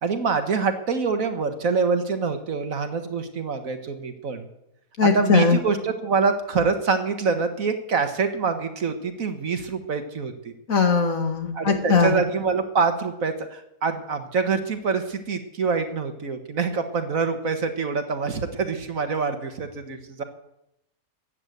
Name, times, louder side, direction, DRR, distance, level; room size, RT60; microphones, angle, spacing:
voice 1, 0.0-4.5 5.0-10.5 11.5-20.2, right 4 dB, 70° right, 7 dB, 1.9 m, -25 dB
voice 2, 5.0-5.6 10.7-12.1, left 5 dB, 70° left, 4 dB, 2.5 m, -20 dB
15.0 x 9.9 x 8.1 m, 0.84 s
omnidirectional pair, 1.5 m